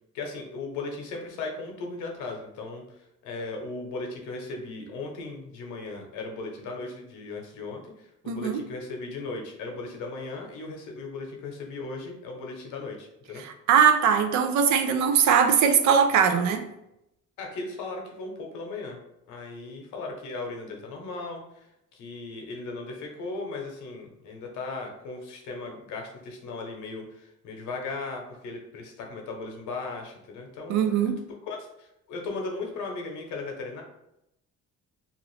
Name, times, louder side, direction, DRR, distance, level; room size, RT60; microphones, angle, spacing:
voice 1, 0.1-2.8 3.2-13.4 17.4-19.0 19.3-21.7 21.9-31.1 31.4-33.8, left 3 dB, 85° left, 1 dB, 0.8 m, -37 dB
voice 2, 8.3-8.6 13.4-16.7 30.7-31.2, right 7 dB, 70° right, 7 dB, 0.5 m, -21 dB
2.9 x 2.5 x 3.1 m, 0.85 s
cardioid pair, 165°, 29 cm